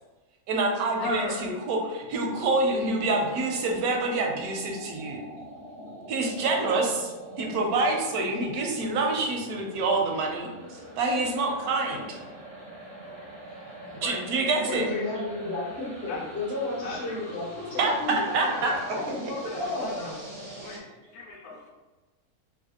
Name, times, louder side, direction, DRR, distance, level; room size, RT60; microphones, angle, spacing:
voice 1, 0.5-5.2 6.1-7.1 7.4-12.2 13.9-14.9 17.8-18.8, right 3 dB, 80° right, 1 dB, 1.1 m, -27 dB
voice 2, 1.0-1.5 13.1-13.3 14.0-15.0 16.1-16.2 16.8-17.2 18.5-19.0 19.4-20.1 20.6-21.7, left 3 dB, 85° left, -2 dB, 1.1 m, -37 dB
sound 1, 2.0-20.8, right 1 dB, 45° right, 0.3 m, -43 dB
voice 3, 14.6-20.2, left 2 dB, 50° left, -5 dB, 0.8 m, -33 dB
3.2 x 2.5 x 2.8 m, 1.2 s
omnidirectional pair, 1.6 m